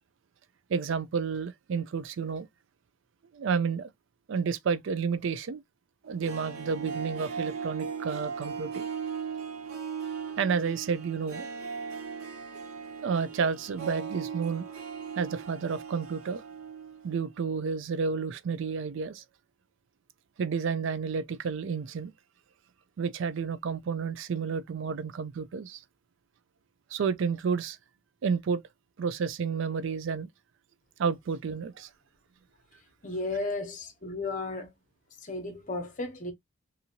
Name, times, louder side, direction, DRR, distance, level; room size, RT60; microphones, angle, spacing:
voice 1, 0.7-2.5 3.3-3.9 4.3-5.6 6.1-8.9 10.4-11.5 13.0-14.7 15.2-16.4 17.0-19.2 20.4-22.1 23.0-25.8 26.9-27.8 28.2-28.6 29.0-30.3 31.0-31.9, right 5 dB, 65° right, 0.3 m, -30 dB
Harp, 6.0-17.1 17.3-17.4, right 6 dB, 90° right, 0.7 m, -38 dB
voice 2, 33.0-34.7 35.1-36.3, left 2 dB, 40° left, 0.9 m, -34 dB
2.7 x 2.6 x 2.8 m
head